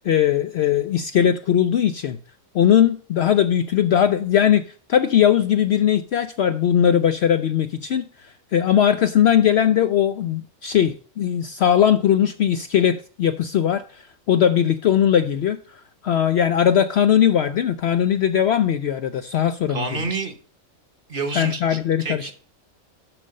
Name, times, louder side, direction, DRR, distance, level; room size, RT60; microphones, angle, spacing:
voice 1, 0.0-2.2 2.5-4.6 4.9-20.0 21.3-22.3, left 9 dB, 65° left, 0.7 m, -19 dB
voice 2, 19.7-20.4 21.1-22.3, right 4 dB, 40° right, 1.1 m, -29 dB
7.6 x 6.4 x 5.2 m
omnidirectional pair, 1.5 m